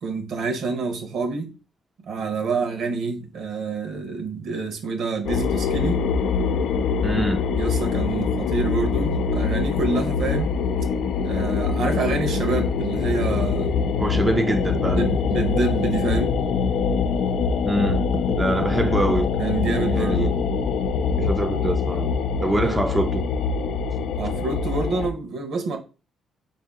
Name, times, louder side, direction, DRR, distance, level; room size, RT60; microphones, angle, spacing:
voice 1, 0.0-1.5 2.0-6.0 7.5-10.6 11.2-13.7 14.9-16.4 18.7-18.9 19.4-20.4 22.5-22.8 24.1-25.8, right 4 dB, 70° right, 0.9 m, -27 dB
sound 1, 5.3-25.1, left 5 dB, 75° left, 0.3 m, -24 dB
voice 2, 7.0-7.4 14.0-15.1 17.6-19.4 19.9-20.4 21.2-22.1 22.4-23.3, right 1 dB, 15° right, 0.4 m, -24 dB
3.8 x 2.6 x 3.6 m
cardioid pair, 90°, 0 cm